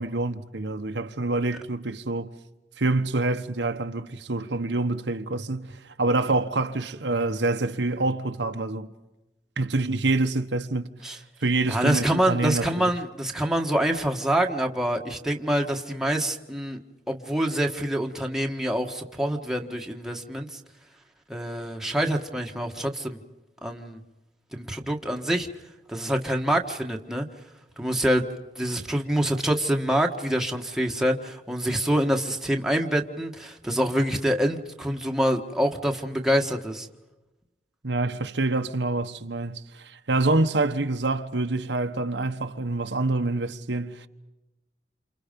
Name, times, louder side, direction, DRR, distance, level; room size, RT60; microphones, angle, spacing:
voice 1, 0.0-2.3 2.8-8.9 9.6-10.9 11.4-12.9 37.8-44.1, right 2 dB, 80° right, 1.2 m, -26 dB
voice 2, 11.7-16.8 17.1-20.6 21.3-23.2 23.6-24.0 24.5-25.5 25.9-27.3 27.8-28.2 28.5-36.9, equal, 5° right, 1.6 m, -26 dB
28.5 x 28.5 x 5.3 m
head